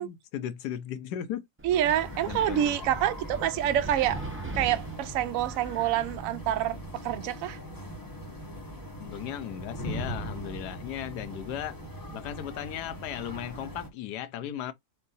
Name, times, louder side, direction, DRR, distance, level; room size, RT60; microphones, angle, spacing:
voice 1, 0.0-1.5 2.3-2.9 9.0-11.8 12.1-14.7, left 10 dB, 90° left, 1.2 m, -36 dB
Wind, 1.6-6.9, right 2 dB, 20° right, 0.3 m, -41 dB
voice 2, 1.6-4.2 4.6-6.8 7.0-7.6, right 11 dB, 65° right, 0.9 m, -27 dB
sound 1, 1.7-13.9, equal, 15° left, 0.8 m, -40 dB
4.5 x 2.3 x 3.9 m
omnidirectional pair, 1.7 m